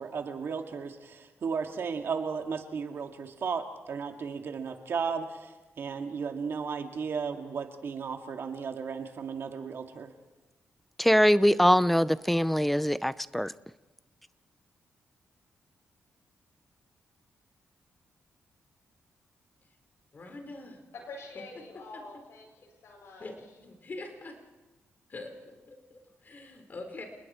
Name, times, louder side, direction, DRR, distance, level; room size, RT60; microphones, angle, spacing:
voice 1, 0.0-10.1, right 6 dB, 60° right, 4 dB, 2.2 m, -35 dB
voice 2, 11.0-13.5, equal, 5° left, 17 dB, 0.6 m, -23 dB
voice 3, 20.1-20.8 21.9-22.0 23.2-23.3 23.6-24.4 25.1-27.1, left 2 dB, 40° left, 4 dB, 4.4 m, -44 dB
voice 4, 20.9-23.2, left 3 dB, 80° left, 1 dB, 6.6 m, -46 dB
29.5 x 20.0 x 4.4 m, 1.1 s
cardioid pair, 100°, 5 cm